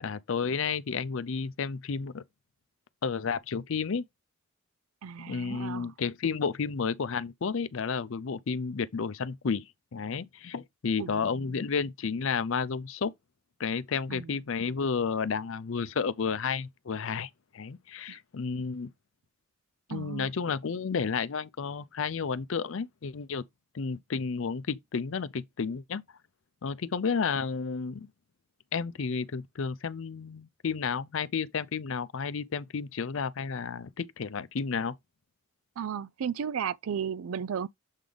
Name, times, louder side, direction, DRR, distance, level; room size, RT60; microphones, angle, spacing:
voice 1, 0.0-2.2 3.0-4.0 5.3-9.6 9.9-13.1 13.6-18.9 19.9-23.4 23.7-26.0 26.6-28.1 28.7-34.9, left 5 dB, 65° left, 0.5 m, -31 dB
voice 2, 5.0-5.9 11.0-11.7 14.1-14.4 18.1-18.2 19.9-20.3 35.8-37.7, right 7 dB, 75° right, 0.4 m, -35 dB
7.2 x 3.4 x 3.9 m
head